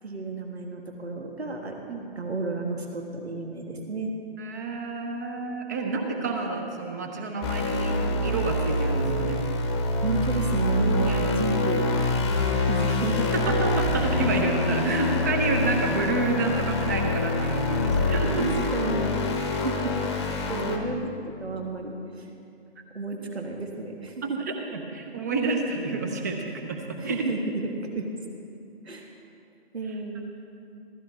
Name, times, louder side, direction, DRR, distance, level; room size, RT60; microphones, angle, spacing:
voice 1, 0.0-1.8 2.1-4.2 10.0-11.9 12.6-13.3 14.3-14.4 14.8-15.1 18.4-19.9 20.3-22.3 22.9-24.4 27.0-28.1 28.8-29.1 29.7-30.2, right 2 dB, 75° right, 2 dB, 1.6 m, -32 dB
voice 2, 4.4-8.0 8.2-9.4 11.1-11.2 13.5-18.6 24.2-27.3, right 3 dB, 15° right, 3 dB, 0.6 m, -29 dB
sound 1, 7.4-20.8, left 2 dB, 25° left, 0.9 m, -26 dB
15.0 x 14.5 x 3.4 m, 2.5 s
figure-of-eight pair, 140°, 32 cm